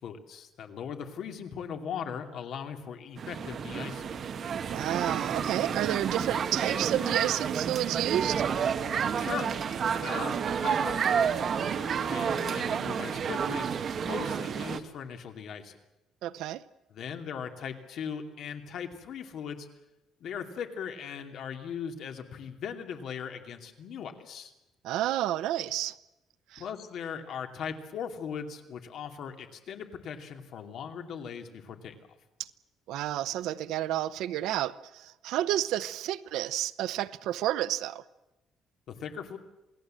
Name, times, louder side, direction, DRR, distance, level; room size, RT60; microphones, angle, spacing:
voice 1, 0.0-4.2 9.2-9.5 10.0-13.7 14.0-15.8 16.9-19.7 20.2-24.5 26.6-31.9 38.9-39.4, left 7 dB, 55° left, 2.6 m, -39 dB
sound 1, 3.2-14.8, right 7 dB, 40° right, 1.3 m, -30 dB
voice 2, 4.7-8.4 11.6-11.8 16.2-16.6 24.8-26.0 26.5-26.6 32.9-38.0, right 13 dB, 80° right, 0.8 m, -30 dB
28.0 x 18.5 x 7.7 m
cardioid pair, 165°, 0 cm